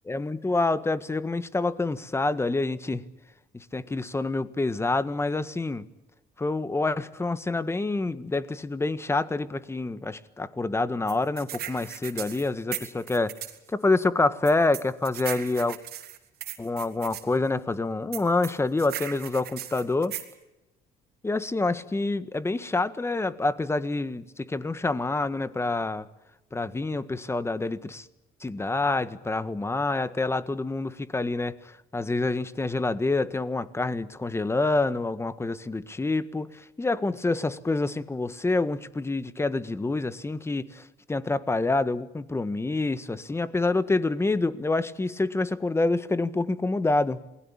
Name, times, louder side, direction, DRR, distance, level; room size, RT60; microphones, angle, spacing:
voice 1, 0.1-3.0 3.5-5.9 6.4-13.3 13.7-15.8 16.6-20.2 21.2-26.1 26.5-28.1 28.4-47.2, left 3 dB, 15° left, 14 dB, 1.6 m, -27 dB
sound 1, 11.1-13.6 14.4-17.2 18.1-20.3, right 12 dB, 70° right, 3.5 m, -37 dB
28.0 x 20.5 x 8.8 m, 0.96 s
cardioid pair, 110°, 17 cm